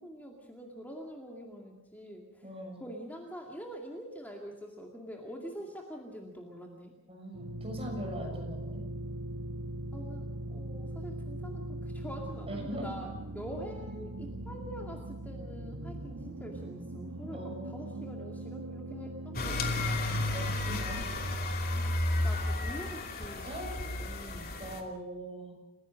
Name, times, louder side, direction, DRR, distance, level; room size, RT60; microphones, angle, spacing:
voice 1, 0.0-2.4 2.8-6.9 9.9-20.0 22.2-23.5 24.0-24.6, equal, 10° left, 0 dB, 2.2 m, -45 dB
voice 2, 2.4-2.8 7.1-8.8 12.4-12.9 17.3-18.0 20.3-21.0 23.4-24.0 24.6-25.6, equal, 25° right, 2 dB, 6.5 m, -41 dB
sound 1, 7.3-21.4, right 1 dB, 90° right, 1.3 m, -40 dB
sound 2, 19.3-24.8, left 2 dB, 45° left, 2.9 m, -32 dB
29.0 x 16.5 x 6.4 m, 1.1 s
head